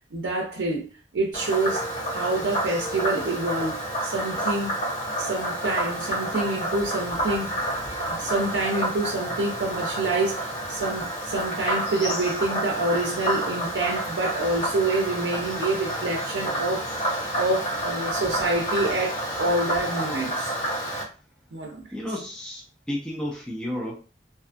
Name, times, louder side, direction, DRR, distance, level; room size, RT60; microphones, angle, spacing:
voice 1, 0.1-0.9 1.1-4.7 5.2-7.6 8.1-20.5 21.5-21.9, right 2 dB, 80° right, 0.5 m, -27 dB
Frog, 1.3-21.0, right 1 dB, 45° left, 1.1 m, -29 dB
voice 2, 21.9-24.0, left 1 dB, 5° left, 0.4 m, -32 dB
2.6 x 2.3 x 2.4 m
head